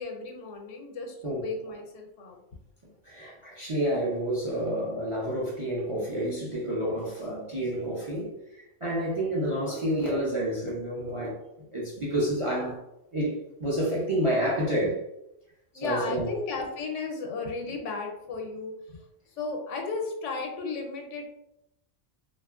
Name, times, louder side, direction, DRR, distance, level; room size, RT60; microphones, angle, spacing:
voice 1, 0.0-2.4 15.7-19.0 19.3-21.3, left 4 dB, 85° left, 1.0 m, -34 dB
voice 2, 3.0-11.4 11.7-12.8 13.1-15.0 15.7-16.3, right 1 dB, 45° right, 0.4 m, -29 dB
2.8 x 2.3 x 2.3 m
omnidirectional pair, 1.2 m